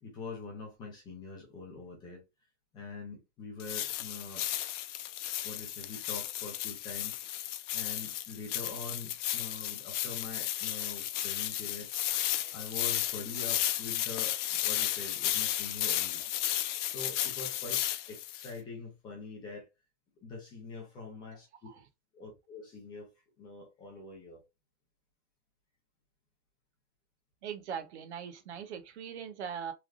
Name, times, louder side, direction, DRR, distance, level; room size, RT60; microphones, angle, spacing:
voice 1, 0.0-2.2 2.7-4.5 5.4-7.1 7.7-11.9 12.5-16.2 16.8-19.7 20.2-21.5 22.1-23.1 23.4-24.4, left 4 dB, 10° left, 0.6 m, -44 dB
sound 1, 3.6-18.5, left 13 dB, 80° left, 0.6 m, -34 dB
voice 2, 27.4-29.7, right 7 dB, 65° right, 0.8 m, -40 dB
3.3 x 2.4 x 2.3 m
supercardioid pair, 180°, 36 cm